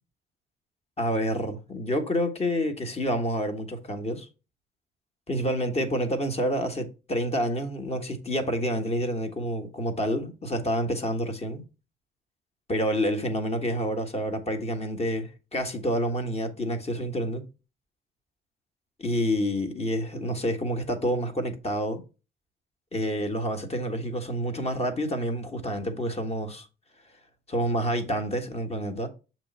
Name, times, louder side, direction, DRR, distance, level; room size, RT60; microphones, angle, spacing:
voice 1, 1.0-4.3 5.3-11.6 12.7-17.4 19.0-22.0 22.9-26.7 27.5-29.1, equal, 30° left, 1.4 m, -28 dB
6.7 x 3.1 x 5.4 m
cardioid pair, 90°, 20 cm